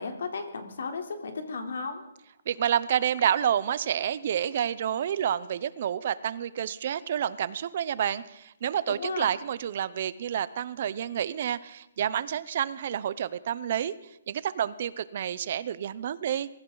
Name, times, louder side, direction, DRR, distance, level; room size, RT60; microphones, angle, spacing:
voice 1, 0.0-2.0 8.9-9.3, left 4 dB, 65° left, 4 dB, 3.4 m, -34 dB
voice 2, 2.5-13.9 14.3-16.5, right 9 dB, 35° right, 17 dB, 0.6 m, -29 dB
23.0 x 15.5 x 3.9 m, 0.93 s
hypercardioid pair, 175°, 0 cm